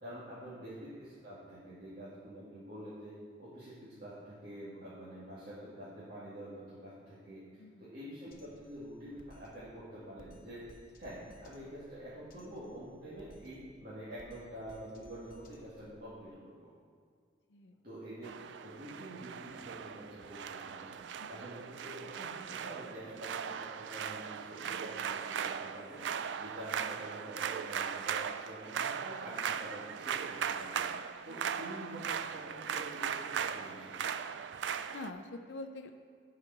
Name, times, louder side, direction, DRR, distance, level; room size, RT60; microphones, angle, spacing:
voice 1, 0.0-3.1 3.4-7.4 7.8-10.7 11.0-16.7 17.8-18.3 18.6-20.9 21.3-26.0 26.4-30.9 31.2-32.0 32.3-34.1, equal, 50° right, -11 dB, 2.2 m, -47 dB
voice 2, 7.6-7.9 17.5-17.8 21.2-21.5 31.3-31.5 34.9-35.9, left 2 dB, 75° left, 6 dB, 0.6 m, -46 dB
Drum kit, 8.3-16.3, left 1 dB, 50° left, 0.8 m, -59 dB
sound 1, 18.2-35.1, right 7 dB, 80° right, 0.4 m, -38 dB
9.8 x 5.0 x 5.9 m, 2.1 s
head